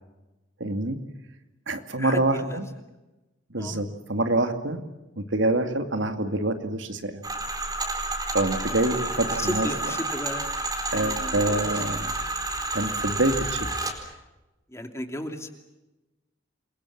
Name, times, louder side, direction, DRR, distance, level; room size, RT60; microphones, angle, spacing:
voice 1, 0.6-1.0 1.7-2.6 3.5-4.8 5.2-7.2 8.3-9.7 10.9-12.0 12.7-13.7, right 2 dB, 70° right, 7 dB, 2.4 m, -26 dB
voice 2, 2.0-2.6 3.6-3.8 9.4-10.4 10.9-11.6 14.7-15.5, left 1 dB, 15° left, 5 dB, 2.7 m, -34 dB
sound 1, 7.2-14.0, right 2 dB, 20° right, 4.3 m, -30 dB
28.5 x 22.5 x 7.3 m, 1.0 s
head